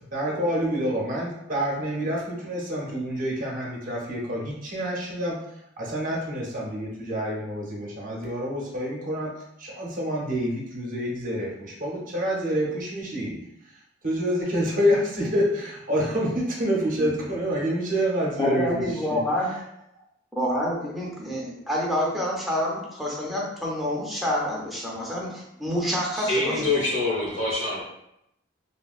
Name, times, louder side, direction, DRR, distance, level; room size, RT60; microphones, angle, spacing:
voice 1, 0.1-5.4 5.8-9.3 9.6-13.4 14.0-19.2, equal, 45° right, -3 dB, 0.7 m, -27 dB
voice 2, 18.4-19.5 20.4-26.8 27.1-27.2, equal, ahead, -5 dB, 0.6 m, -28 dB
voice 3, 26.1-27.8, left 2 dB, 80° left, -6 dB, 1.1 m, -25 dB
3.0 x 2.2 x 2.4 m, 0.80 s
head